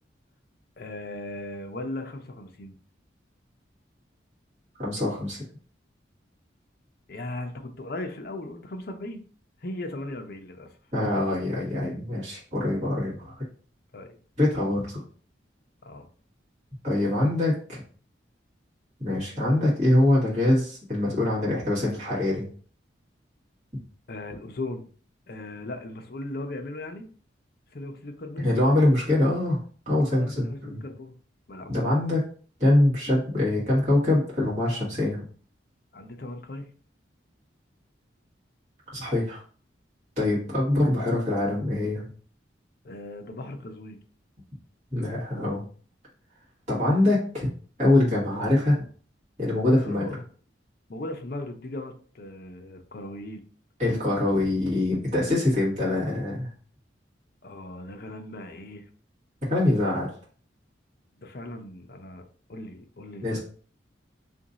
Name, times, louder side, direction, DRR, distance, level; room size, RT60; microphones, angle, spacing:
voice 1, 0.8-2.7 7.1-9.2 9.6-10.7 13.9-14.2 15.8-16.1 24.1-24.9 25.3-27.1 27.7-28.5 30.1-31.1 31.5-31.9 35.9-36.6 42.8-44.0 49.6-50.2 50.9-53.4 57.4-58.9 61.2-63.4, left 2 dB, 50° left, 5 dB, 0.5 m, -38 dB
voice 2, 4.8-5.4 10.9-13.4 14.4-15.0 16.8-17.8 19.0-22.4 28.4-29.6 29.8-30.8 31.7-32.2 32.6-35.2 38.9-39.4 40.2-42.0 44.9-45.6 46.7-47.5 47.8-48.8 49.4-50.1 53.8-56.5 59.5-60.1 63.2-63.4, left 1 dB, 40° right, -7 dB, 1.6 m, -24 dB
2.9 x 2.6 x 3.9 m, 0.42 s
head